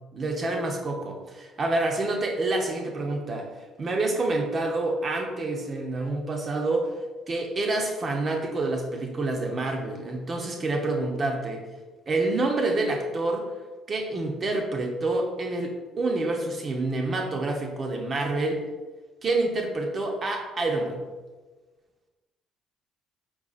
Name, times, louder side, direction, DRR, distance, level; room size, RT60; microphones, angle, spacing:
voice 1, 0.1-3.5 3.8-6.9 7.3-11.6 12.1-13.5 13.9-18.6 19.2-21.0, right 2 dB, 40° right, 2 dB, 0.9 m, -27 dB
4.6 x 4.1 x 2.5 m, 1.3 s
supercardioid pair, 75°, 0 cm